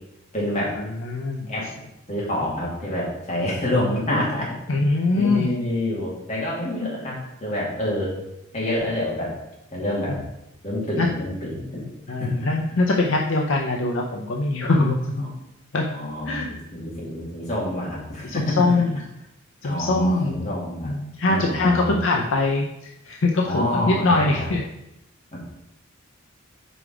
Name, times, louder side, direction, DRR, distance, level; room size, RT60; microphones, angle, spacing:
voice 1, 0.3-0.7 1.5-1.7 2.1-4.5 5.1-8.1 8.5-9.3 9.7-10.2 10.6-11.8 12.2-12.5 15.2-15.3 15.9-18.8 19.6-20.9 21.3-21.9 23.4-24.5 25.3-25.4, left 1 dB, 30° left, -6 dB, 2.3 m, -27 dB
voice 2, 1.0-1.4 4.7-5.5 11.0-11.1 12.1-15.0 15.7-15.8 16.3-16.5 18.2-19.0 19.6-20.4 20.9-22.7 23.1-24.7, left 2 dB, 60° left, 1 dB, 0.6 m, -22 dB
5.0 x 4.9 x 4.9 m, 0.88 s
head